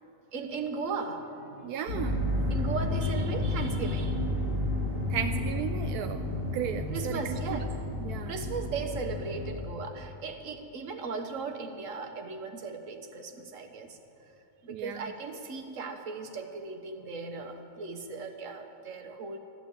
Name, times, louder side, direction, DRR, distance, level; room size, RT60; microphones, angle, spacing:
voice 1, 0.3-1.7 2.5-4.2 6.9-7.7 8.2-14.0 14.6-19.4, right 4 dB, 60° right, 5 dB, 1.5 m, -37 dB
voice 2, 1.6-2.2 5.1-6.2 6.5-7.6 8.0-8.3 14.7-15.1, right 9 dB, 85° right, 7 dB, 1.1 m, -35 dB
sound 1, 1.9-9.6, left 1 dB, 60° left, 4.1 m, -31 dB
13.5 x 11.5 x 8.3 m, 2.7 s
omnidirectional pair, 1.6 m